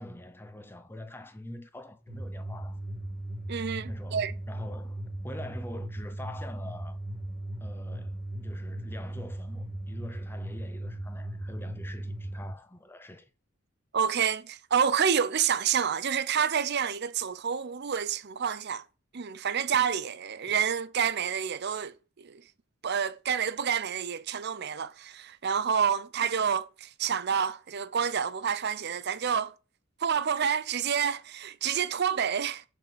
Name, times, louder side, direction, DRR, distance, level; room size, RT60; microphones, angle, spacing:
voice 1, 0.0-2.8 3.9-7.0 7.6-13.3 20.5-20.6, left 1 dB, 10° left, 0.7 m, -45 dB
sound 1, 2.1-12.5, right 1 dB, 40° left, 2.5 m, -37 dB
voice 2, 3.5-4.3 13.9-18.8 19.1-22.4 22.8-29.5 30.0-32.6, right 7 dB, 50° right, 0.6 m, -28 dB
6.7 x 4.3 x 6.7 m
head